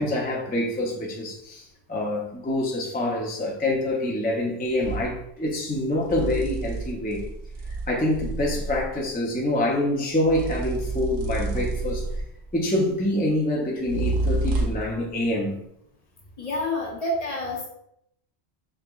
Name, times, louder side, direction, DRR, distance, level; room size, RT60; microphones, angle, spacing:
voice 1, 0.0-1.6 1.9-7.3 7.7-12.0 12.5-15.6, left 1 dB, 15° left, -2 dB, 0.4 m, -26 dB
sound 1, 4.8-5.1 6.0-9.0 10.2-12.5 13.8-15.0, right 2 dB, 60° right, 0.6 m, -29 dB
voice 2, 16.4-17.7, left 1 dB, 40° left, -2 dB, 0.7 m, -28 dB
4.9 x 2.9 x 2.3 m, 0.75 s
omnidirectional pair, 1.1 m